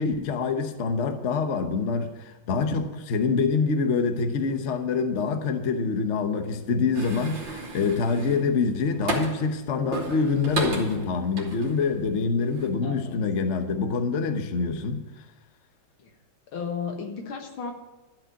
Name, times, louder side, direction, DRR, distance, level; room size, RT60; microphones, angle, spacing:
voice 1, 0.0-15.0, left 4 dB, 45° left, 7 dB, 1.0 m, -25 dB
sound 1, 6.9-9.5 9.9-12.1 12.4-12.7, right 2 dB, 65° right, 2.7 m, -33 dB
voice 2, 12.8-13.2 16.0-16.1 16.5-17.7, left 5 dB, 85° left, 3 dB, 2.3 m, -34 dB
12.5 x 5.5 x 9.0 m, 1.1 s
omnidirectional pair, 2.2 m